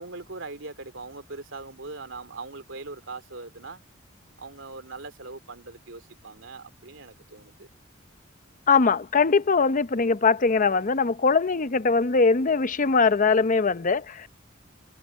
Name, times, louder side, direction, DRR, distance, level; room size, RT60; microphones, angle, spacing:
voice 1, 0.0-3.8 4.4-7.7, right 3 dB, 70° right, 3.2 m, -41 dB
voice 2, 8.7-14.3, left 4 dB, 40° left, 0.7 m, -21 dB
head